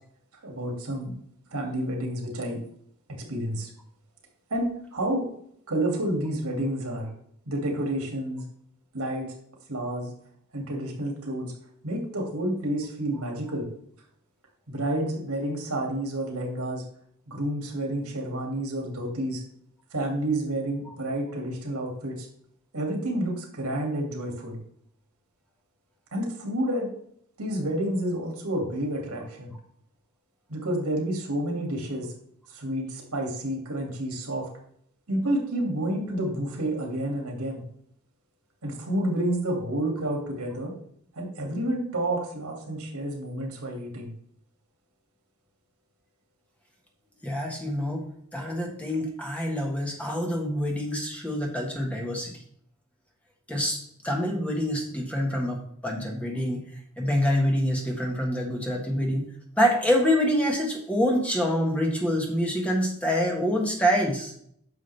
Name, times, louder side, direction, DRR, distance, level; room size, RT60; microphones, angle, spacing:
voice 1, 0.4-1.1 1.5-2.6 3.3-3.7 4.5-5.3 5.7-7.1 7.5-8.4 8.9-9.3 9.7-10.1 10.5-11.5 11.8-13.7 14.7-16.8 17.3-19.4 19.9-22.3 22.7-24.6 26.1-26.9 27.4-29.5 30.5-32.1 32.5-34.5 35.1-37.6 38.6-40.7 41.1-44.1, right 1 dB, 80° right, 1 dB, 2.4 m, -29 dB
voice 2, 47.2-48.1 48.3-52.3 53.5-56.6 57.0-59.3 59.6-64.3, equal, 5° left, -1 dB, 1.5 m, -26 dB
9.5 x 6.3 x 3.4 m, 0.67 s
head